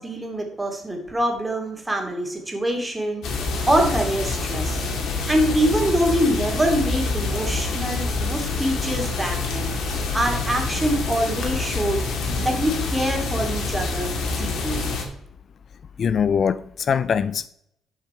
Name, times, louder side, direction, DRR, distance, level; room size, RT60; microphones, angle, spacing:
voice 1, 0.0-3.2 3.7-4.8 5.3-9.7 10.1-12.0 12.4-14.8, right 1 dB, 15° right, 2.7 m, -24 dB
sound 1, 3.2-15.0, left 3 dB, 75° left, 2.4 m, -26 dB
voice 2, 16.0-17.5, left 7 dB, 55° left, 0.4 m, -22 dB
12.0 x 5.8 x 4.5 m
cardioid pair, 90°, 0 cm